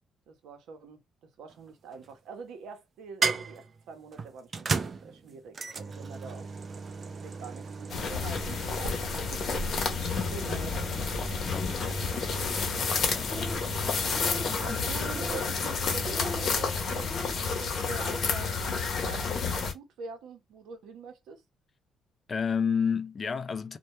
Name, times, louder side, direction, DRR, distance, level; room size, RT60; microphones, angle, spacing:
voice 1, 0.3-1.0 1.4-4.7 5.0-6.5 7.2-9.0 9.3-11.0 11.3-12.0 14.6-21.4, right 5 dB, 85° right, 0.7 m, -44 dB
sound 1, 1.5-2.1 3.2-16.5, right 5 dB, 45° right, 0.4 m, -38 dB
sound 2, 7.9-19.7, left 5 dB, 60° left, 0.7 m, -30 dB
voice 2, 11.5-12.0 13.1-13.6 14.4-14.8 22.3-23.8, left 6 dB, 45° left, 0.3 m, -31 dB
sound 3, 13.2-13.8 14.0-14.6 15.0-15.6 16.0-16.5 16.9-17.4 17.8-18.3, left 1 dB, 20° left, 0.9 m, -41 dB
2.2 x 2.1 x 2.9 m
cardioid pair, 75°, 0 cm